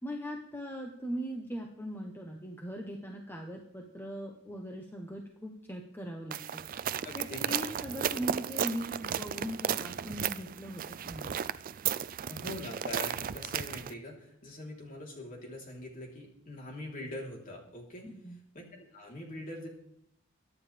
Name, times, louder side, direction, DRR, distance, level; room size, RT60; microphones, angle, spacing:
voice 1, 0.0-6.9 7.1-11.4 18.0-18.4, equal, 10° left, 1 dB, 1.1 m, -40 dB
sound 1, 6.3-13.9, right 9 dB, 40° right, 0.4 m, -34 dB
voice 2, 7.0-7.6 12.3-18.1 18.5-19.7, left 1 dB, 40° left, -1 dB, 3.6 m, -43 dB
23.5 x 9.6 x 3.4 m, 0.76 s
head